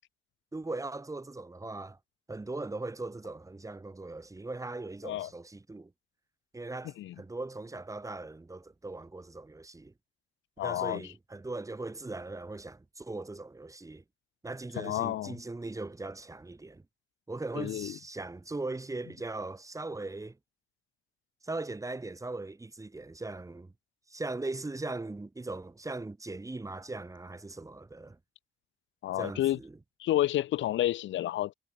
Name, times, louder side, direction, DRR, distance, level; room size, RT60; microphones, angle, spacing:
voice 1, 0.5-2.0 2.3-5.9 6.5-9.9 10.6-14.0 14.4-16.8 17.3-20.4 21.4-23.7 24.1-28.2 29.2-29.8, right 2 dB, 15° right, 2.4 m, -39 dB
voice 2, 10.6-11.0 14.8-15.4 17.6-17.9 29.0-29.6 30.0-31.5, left 13 dB, 70° left, 0.7 m, -30 dB
cardioid pair, 90°, 20 cm